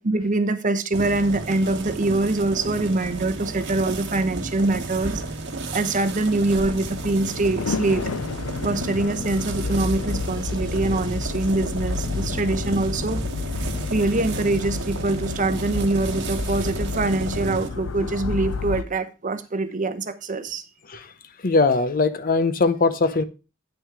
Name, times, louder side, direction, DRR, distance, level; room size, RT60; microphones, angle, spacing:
voice 1, 0.0-5.2 5.7-8.1 8.6-13.2 13.9-20.6, right 2 dB, 40° right, 0.9 m, -24 dB
sound 1, 0.9-17.7, right 2 dB, 60° right, 1.4 m, -33 dB
sound 2, 6.4-18.8, left 4 dB, 85° left, 0.5 m, -31 dB
sound 3, 10.2-17.2, right 1 dB, 20° right, 2.4 m, -38 dB
voice 2, 21.4-23.2, left 3 dB, 45° left, 0.7 m, -21 dB
9.2 x 6.2 x 4.8 m
head